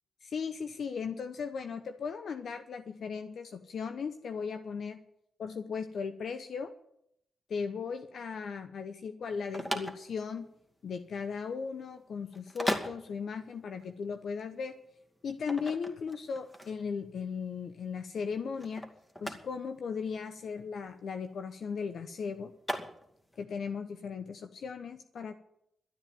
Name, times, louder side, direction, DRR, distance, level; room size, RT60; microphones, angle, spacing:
voice 1, 0.2-5.0 5.4-6.7 7.5-10.5 10.8-14.8 15.2-18.9 19.2-22.5 23.4-25.3, left 5 dB, 70° left, 8 dB, 0.8 m, -37 dB
sound 1, 9.2-23.4, equal, 15° left, 2.4 m, -39 dB
12.5 x 9.3 x 9.1 m, 0.77 s
supercardioid pair, 45°, 0 cm